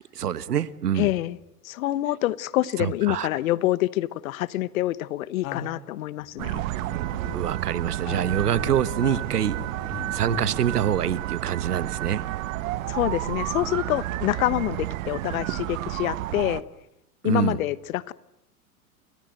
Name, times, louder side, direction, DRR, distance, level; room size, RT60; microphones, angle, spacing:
voice 1, 0.1-1.1 2.8-3.3 7.3-9.6 10.1-12.2 17.2-17.6, right 9 dB, 85° right, 17 dB, 1.4 m, -25 dB
voice 2, 1.0-1.4 1.6-6.6 12.9-16.6 17.2-18.1, left 15 dB, 65° left, 18 dB, 1.2 m, -26 dB
sound 1, 5.4-7.6 7.9-10.6, left 7 dB, 45° left, 3.0 m, -39 dB
sound 2, 6.4-16.6, right 16 dB, 60° right, 1.4 m, -31 dB
29.5 x 25.5 x 7.9 m, 0.83 s
hypercardioid pair, 110°, 45 cm